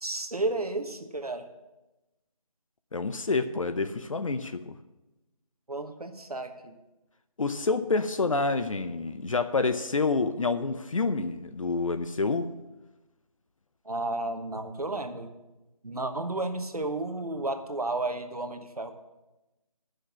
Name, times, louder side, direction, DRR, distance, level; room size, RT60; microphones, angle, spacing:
voice 1, 0.0-1.4 5.7-6.7 13.8-15.3 15.8-18.9, right 2 dB, 90° right, 7 dB, 1.3 m, -32 dB
voice 2, 2.9-4.7 7.4-12.5, left 3 dB, 60° left, 9 dB, 0.7 m, -28 dB
9.5 x 6.5 x 7.4 m, 1.0 s
figure-of-eight pair, 160°, 19 cm